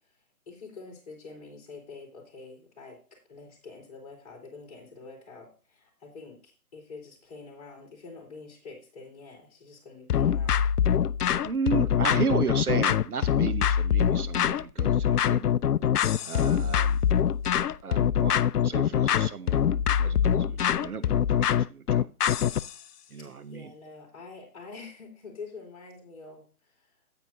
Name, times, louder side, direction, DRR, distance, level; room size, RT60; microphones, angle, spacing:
voice 1, 0.5-3.0 3.3-10.7 16.6-16.9 23.3-26.9, left 4 dB, 25° left, 0 dB, 3.5 m, -46 dB
sound 1, 10.1-22.7, left 9 dB, 80° left, 0.5 m, -24 dB
voice 2, 11.4-15.5 16.2-17.0 17.8-22.1 23.1-23.7, right 5 dB, 70° right, 12 dB, 0.9 m, -34 dB
9.3 x 8.9 x 2.8 m, 0.37 s
figure-of-eight pair, 160°, 46 cm